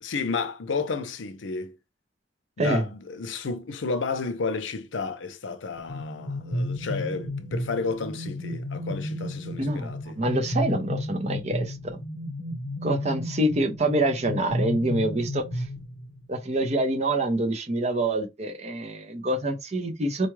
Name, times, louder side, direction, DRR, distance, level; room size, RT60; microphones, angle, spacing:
voice 1, 0.0-1.8 2.6-10.2, left 4 dB, 85° left, 0.5 m, -32 dB
sound 1, 5.8-16.3, left 1 dB, 60° left, 0.9 m, -33 dB
voice 2, 9.6-9.9 10.2-12.0 12.8-15.6 16.3-20.3, right 1 dB, 35° right, 0.7 m, -26 dB
4.2 x 2.3 x 3.1 m
head